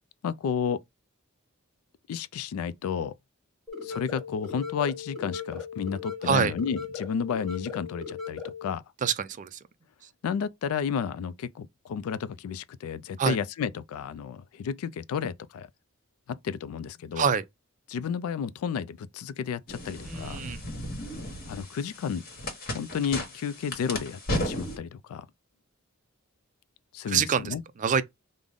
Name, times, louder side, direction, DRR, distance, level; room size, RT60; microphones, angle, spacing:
voice 1, 0.2-0.8 2.1-3.2 3.8-8.8 10.2-15.7 16.3-17.3 17.9-20.4 21.5-22.2 22.7-25.3 26.9-27.6, left 7 dB, 85° left, 0.3 m, -32 dB
sound 1, 3.7-8.7, left 6 dB, ahead, 0.9 m, -38 dB
voice 2, 9.0-9.6 13.2-13.4 17.2-17.4 20.1-20.6 27.1-28.0, right 6 dB, 35° right, 0.4 m, -26 dB
sound 2, 19.7-24.8, left 1 dB, 45° left, 1.1 m, -35 dB
3.7 x 2.0 x 3.4 m
head